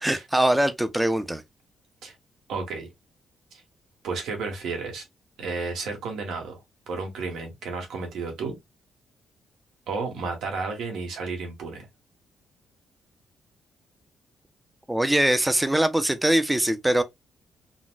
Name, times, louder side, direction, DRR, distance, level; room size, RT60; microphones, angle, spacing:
voice 1, 0.0-1.4 14.9-17.0, right 1 dB, 5° right, 0.4 m, -22 dB
voice 2, 2.5-2.9 3.5-3.6 4.0-5.0 5.4-6.6 6.9-8.6 9.9-11.9, right 4 dB, 90° right, 1.1 m, -32 dB
3.9 x 2.1 x 2.3 m
cardioid pair, 145°, 0 cm